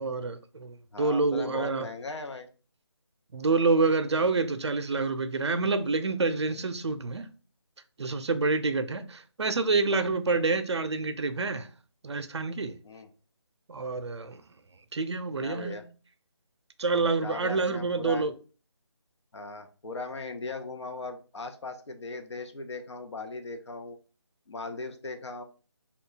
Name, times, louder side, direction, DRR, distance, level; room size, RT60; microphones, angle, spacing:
voice 1, 0.0-1.9 3.3-7.3 8.0-11.7 12.0-12.7 13.7-14.4 14.9-15.8 16.8-18.3, right 3 dB, 65° right, 0.5 m, -27 dB
voice 2, 0.9-2.5 10.4-10.5 12.8-13.1 15.4-15.8 17.2-18.2 19.3-24.0 24.5-25.4, left 3 dB, 75° left, 0.7 m, -38 dB
3.1 x 2.3 x 3.7 m
figure-of-eight pair, 170°, 15 cm